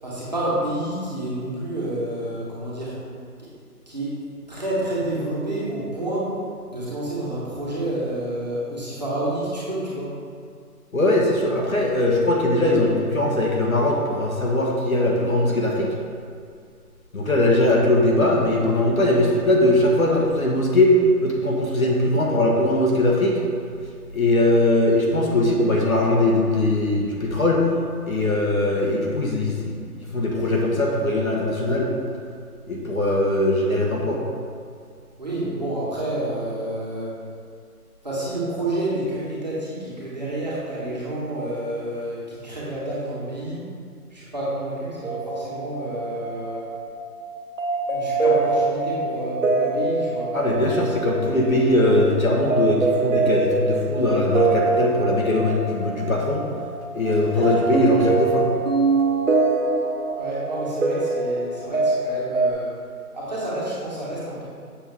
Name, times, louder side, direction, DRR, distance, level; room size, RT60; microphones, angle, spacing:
voice 1, 0.0-3.0 3.4-3.5 3.9-4.2 4.5-6.4 6.7-10.1 35.2-37.1 38.0-43.6 44.1-46.7 47.9-50.3 57.4-57.5 60.1-62.7 63.1-64.4, right 1 dB, 25° right, -8 dB, 1.7 m, -29 dB
voice 2, 10.9-15.9 17.1-23.4 24.1-27.7 28.1-29.7 30.1-31.9 32.7-34.2 50.3-56.5 56.9-58.5, left 1 dB, 60° left, -1 dB, 1.6 m, -20 dB
sound 1, 45.0-62.5, right 3 dB, 55° right, 0.9 m, -24 dB
7.7 x 7.3 x 3.6 m, 2.3 s
hypercardioid pair, 180°, 47 cm